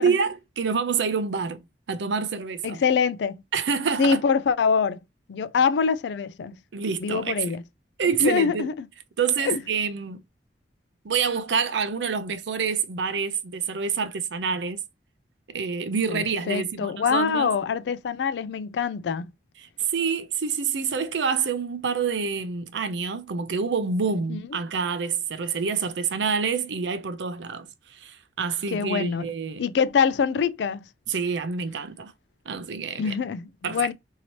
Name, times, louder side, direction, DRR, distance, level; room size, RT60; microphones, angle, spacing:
voice 1, 0.0-1.6 1.9-2.8 3.5-4.2 6.7-7.5 8.0-8.7 9.2-10.2 11.0-14.8 15.5-17.5 19.9-29.6 31.1-32.1 32.5-33.1 33.6-33.9, right 5 dB, 85° right, 0.5 m, -27 dB
voice 2, 2.6-3.4 4.0-5.0 5.3-6.6 7.0-7.6 8.2-8.9 9.4-9.6 16.1-19.3 24.3-24.4 28.7-29.3 29.6-30.9 33.0-33.9, left 6 dB, 70° left, 0.3 m, -24 dB
2.8 x 2.8 x 2.9 m
head